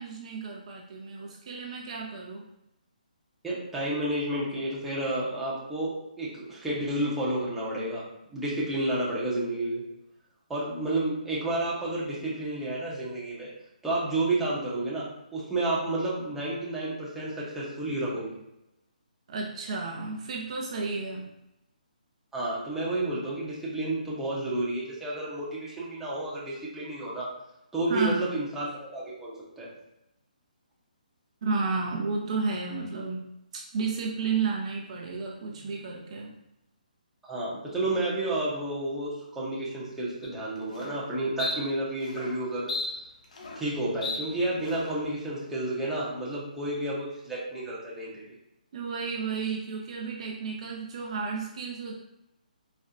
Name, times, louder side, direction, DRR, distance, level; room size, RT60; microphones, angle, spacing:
voice 1, 0.0-2.5 19.3-21.3 27.9-28.3 31.4-33.2 33.5-36.3 48.7-52.0, right 4 dB, 45° right, -1 dB, 0.5 m, -32 dB
voice 2, 3.4-8.0 8.3-9.8 10.5-13.5 13.8-18.3 22.3-27.3 27.7-29.7 37.2-42.7 43.6-48.2, right 1 dB, 5° right, -7 dB, 0.8 m, -31 dB
sound 1, 40.2-40.3 40.7-41.0 41.4-41.6 42.1-42.3 42.7-43.7 44.0-44.2 44.7-45.0, left 3 dB, 55° left, 0.7 m, -34 dB
4.1 x 2.1 x 2.5 m, 0.86 s
hypercardioid pair, 150°, 5 cm